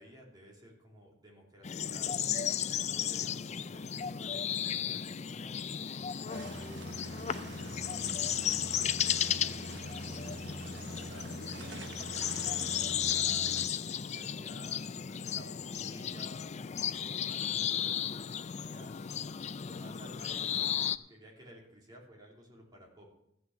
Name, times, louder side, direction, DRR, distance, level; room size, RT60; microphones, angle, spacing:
voice 1, 0.0-2.2 2.9-5.6 6.2-7.0 7.4-9.6 10.2-16.4 17.0-19.0 19.7-20.8 21.1-23.1, equal, 25° right, -2 dB, 3.1 m, -54 dB
sound 1, 1.6-21.0, left 9 dB, 40° left, 0.4 m, -34 dB
sound 2, 6.3-13.7, right 3 dB, 80° right, 1.1 m, -45 dB
14.0 x 6.1 x 7.1 m, 0.78 s
head